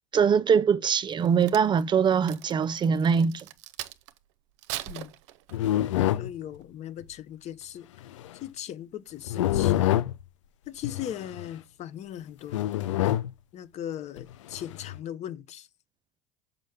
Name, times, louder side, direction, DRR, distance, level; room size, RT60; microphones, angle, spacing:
voice 1, 0.1-3.5, right 6 dB, 30° right, 0.4 m, -22 dB
Crack, 1.1-4.2 4.6-5.8 6.3-6.6, right 15 dB, 70° right, 0.6 m, -40 dB
sound 1, 5.5-6.3 8.0-8.3 9.3-10.2 10.8-11.5 12.5-13.3 14.2-15.0, left 13 dB, 80° left, 0.4 m, -26 dB
voice 2, 6.1-7.9 8.3-9.9 10.7-12.7 13.5-15.7, left 11 dB, 45° left, 0.7 m, -38 dB
6.3 x 5.2 x 3.5 m
hypercardioid pair, 80°, 16 cm